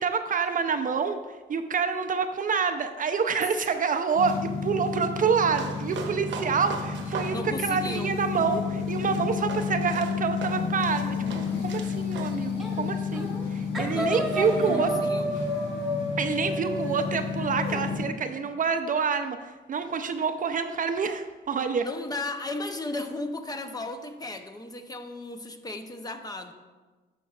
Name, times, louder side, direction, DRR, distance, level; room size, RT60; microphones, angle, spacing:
voice 1, 0.0-14.9 16.2-21.9, right 5 dB, 40° right, 8 dB, 0.5 m, -27 dB
sound 1, 4.1-18.0, left 5 dB, 80° left, 1.3 m, -31 dB
sound 2, 5.4-12.3, right 5 dB, 70° right, 0.9 m, -41 dB
voice 2, 7.3-8.2 13.9-15.3 21.8-26.5, left 2 dB, 20° left, 7 dB, 0.7 m, -35 dB
sound 3, 12.6-12.8 13.1-13.5 13.7-17.8, equal, ahead, 1.4 m, -31 dB
10.5 x 6.2 x 2.4 m, 1.3 s
cardioid pair, 90°, 20 cm